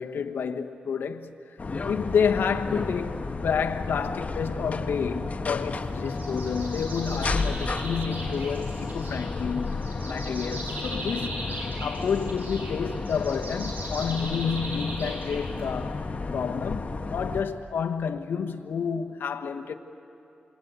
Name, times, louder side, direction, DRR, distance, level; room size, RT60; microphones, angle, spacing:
voice 1, 0.0-1.6 1.9-9.8 10.0-16.0 16.3-19.7, left 6 dB, 85° left, 1.2 m, -30 dB
sound 1, 1.6-17.4, left 3 dB, 45° left, 1.6 m, -32 dB
sound 2, 6.0-15.9, right 1 dB, 65° right, 7.5 m, -39 dB
27.5 x 23.0 x 9.4 m
cardioid pair, 65°, 3 cm